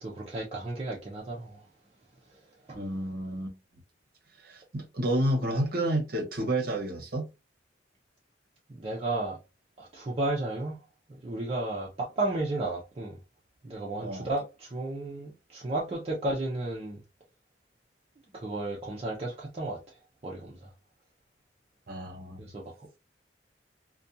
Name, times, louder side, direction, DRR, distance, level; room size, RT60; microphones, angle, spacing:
voice 1, 0.0-1.6 2.7-2.8 8.7-9.4 9.8-10.8 11.2-13.2 13.6-17.0 18.3-19.8 20.2-20.7 22.4-22.9, right 2 dB, 35° right, 0.5 m, -33 dB
voice 2, 2.7-3.5 4.4-7.3 14.0-14.3 21.9-22.4, right 1 dB, 55° right, 0.8 m, -30 dB
2.4 x 2.2 x 2.6 m
head